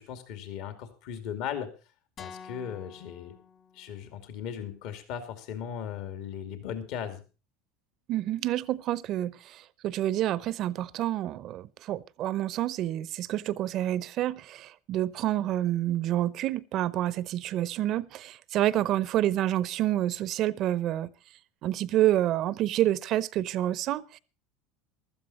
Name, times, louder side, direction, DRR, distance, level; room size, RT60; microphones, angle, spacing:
voice 1, 0.0-1.7 2.2-3.4 3.7-7.2, left 8 dB, 65° left, 2.4 m, -37 dB
sound 1, 2.2-4.3, left 7 dB, 45° left, 1.8 m, -48 dB
voice 2, 8.1-21.1 21.6-24.2, right 13 dB, 50° right, 0.7 m, -28 dB
15.5 x 12.5 x 4.2 m
supercardioid pair, 100°, 0 cm